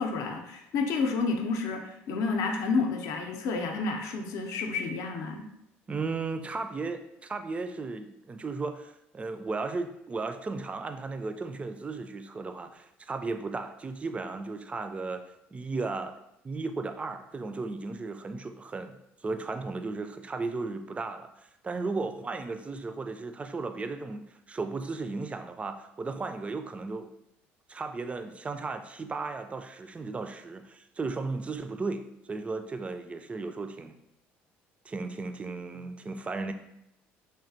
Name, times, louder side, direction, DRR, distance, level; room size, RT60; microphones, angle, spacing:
voice 1, 0.0-5.5, left 4 dB, 70° left, 3 dB, 0.5 m, -30 dB
voice 2, 5.9-15.2 15.5-16.1 16.4-21.3 21.6-27.1 27.7-34.0 34.9-36.5, right 3 dB, 20° right, 8 dB, 0.3 m, -35 dB
3.3 x 2.4 x 2.6 m, 0.81 s
supercardioid pair, 75°, 6 cm